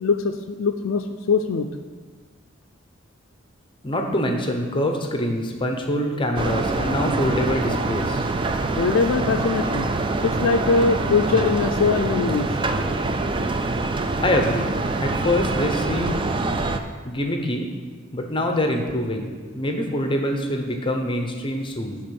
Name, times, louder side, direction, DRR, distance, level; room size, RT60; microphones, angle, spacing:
voice 1, 0.0-1.7 8.8-9.9 10.2-12.5, left 4 dB, 75° left, 4 dB, 0.4 m, -22 dB
voice 2, 3.8-8.3 14.2-14.7 15.0-16.2 17.0-17.7 18.1-22.0, left 1 dB, 25° left, 3 dB, 0.7 m, -25 dB
sound 1, 6.4-16.8, right 2 dB, 25° right, 0.3 m, -25 dB
9.9 x 3.5 x 6.9 m, 1.5 s
head